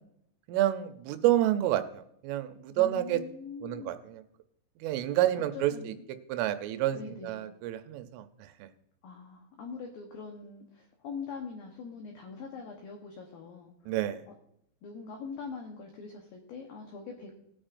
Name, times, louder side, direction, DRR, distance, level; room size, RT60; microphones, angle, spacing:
voice 1, 0.5-1.8 2.2-3.2 3.6-4.2 4.8-5.7 6.3-8.2 13.9-14.2, right 13 dB, 85° right, 9 dB, 3.3 m, -28 dB
voice 2, 2.8-4.0 5.5-6.0 6.9-7.4 9.0-13.7 14.8-17.3, left 5 dB, 70° left, 1 dB, 2.3 m, -43 dB
19.5 x 8.9 x 2.6 m, 0.73 s
omnidirectional pair, 5.5 m